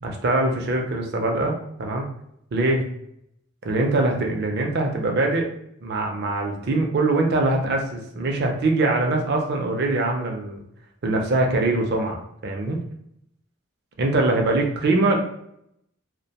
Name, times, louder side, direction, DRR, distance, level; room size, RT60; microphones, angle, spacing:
voice 1, 0.0-2.1 2.5-2.8 3.6-5.5 5.8-10.6 11.0-12.8 14.0-15.2, right 2 dB, 50° right, 2 dB, 0.4 m, -23 dB
2.5 x 2.1 x 2.8 m, 0.76 s
head